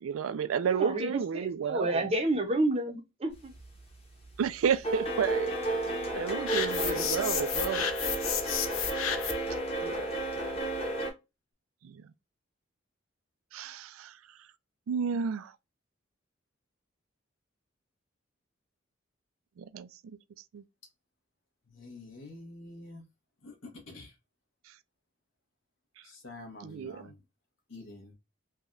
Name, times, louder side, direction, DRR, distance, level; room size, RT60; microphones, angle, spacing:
voice 1, 0.0-2.1 4.4-5.6 6.1-7.8 9.8-10.0 11.8-12.0 13.5-14.1 14.9-15.5 19.6-20.2 20.5-20.6 26.6-27.0, right 7 dB, 85° right, 0.3 m, -31 dB
voice 2, 0.6-3.5 6.7-7.0, right 1 dB, 30° right, 0.6 m, -30 dB
sound 1, 3.5-3.9 4.2-11.1, right 2 dB, 30° left, 0.9 m, -32 dB
sound 2, 6.5-9.5, left 8 dB, 85° left, 0.5 m, -32 dB
voice 3, 21.7-23.0 23.4-23.5 23.9-24.1 26.0-27.2 27.7-28.1, left 2 dB, 70° left, 1.0 m, -47 dB
3.4 x 2.2 x 2.4 m
head